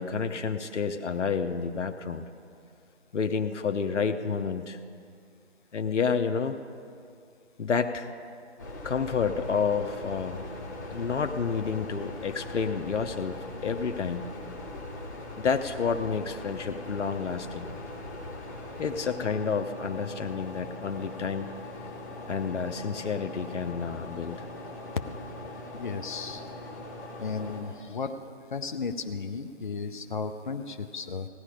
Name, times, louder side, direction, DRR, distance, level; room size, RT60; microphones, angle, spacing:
voice 1, 0.0-2.2 3.1-4.8 5.7-6.6 7.6-8.1 8.8-10.4 10.9-14.3 15.4-17.7 18.8-21.5 22.3-24.5, left 6 dB, 85° left, 7 dB, 0.8 m, -29 dB
sound 1, 8.6-27.6, left 2 dB, 15° left, 1.0 m, -41 dB
voice 2, 25.7-26.4 27.2-28.2 28.5-31.3, left 5 dB, 45° left, 7 dB, 0.7 m, -34 dB
16.5 x 10.0 x 4.9 m, 2.4 s
figure-of-eight pair, 165°, 35 cm